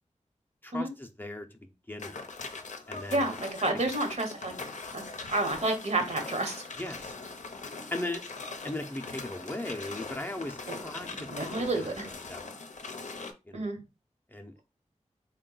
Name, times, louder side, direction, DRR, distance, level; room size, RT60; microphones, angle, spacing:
voice 1, 0.6-2.2 2.9-3.4 6.8-7.1 7.9-8.2 8.6-11.9 12.3-12.5 13.5-13.6 14.3-14.5, left 1 dB, 15° left, 4 dB, 0.5 m, -38 dB
sound 1, 2.0-13.3, left 3 dB, 75° left, 0.5 m, -41 dB
voice 2, 3.1-4.5 4.9-6.7 10.7-10.8 11.1-12.1 13.5-13.8, right 2 dB, 65° right, 4 dB, 1.1 m, -30 dB
3.7 x 2.2 x 3.8 m, 0.27 s
cardioid pair, 50°, 13 cm